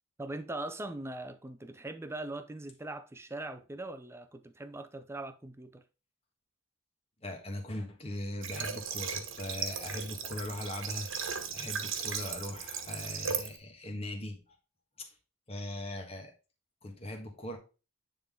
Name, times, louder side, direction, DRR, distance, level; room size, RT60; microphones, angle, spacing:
voice 1, 0.2-5.8, right 2 dB, 10° right, 0.4 m, -41 dB
voice 2, 7.2-11.1 11.5-14.5 15.0-15.1 15.5-16.3 16.8-17.6, left 1 dB, 30° left, 1.4 m, -40 dB
Water / Water tap faucet, 8.4-13.6, right 6 dB, 65° right, 1.2 m, -37 dB
9.4 x 3.8 x 3.6 m
head